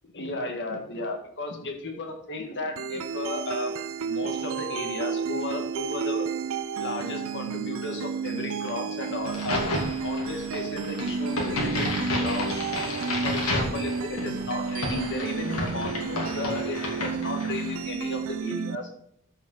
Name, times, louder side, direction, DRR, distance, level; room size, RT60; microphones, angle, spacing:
voice 1, 0.1-3.7 4.0-6.3 6.8-12.6 13.2-18.9, left 2 dB, 55° left, 4 dB, 1.7 m, -34 dB
sound 1, 2.8-18.8, right 5 dB, 65° right, 0.6 m, -31 dB
Crack, 9.2-17.8, left 2 dB, 80° left, 2.5 m, -32 dB
13.5 x 5.3 x 3.9 m, 0.69 s
head